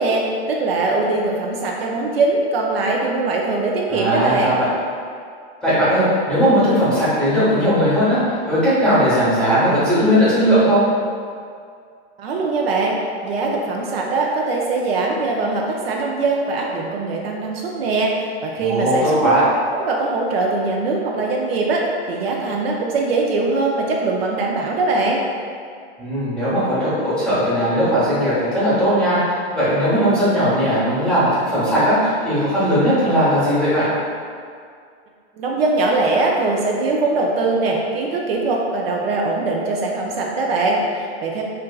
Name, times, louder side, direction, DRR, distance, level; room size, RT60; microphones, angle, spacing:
voice 1, 0.0-4.5 12.2-13.0 13.2-19.3 19.7-25.2 35.4-41.4, right 3 dB, 65° right, -1 dB, 0.5 m, -21 dB
voice 2, 3.9-4.7 5.6-8.2 8.5-10.8 18.6-19.4 26.0-33.9, equal, 5° left, -12 dB, 0.8 m, -18 dB
4.2 x 2.5 x 2.3 m, 2.2 s
supercardioid pair, 160°, 33 cm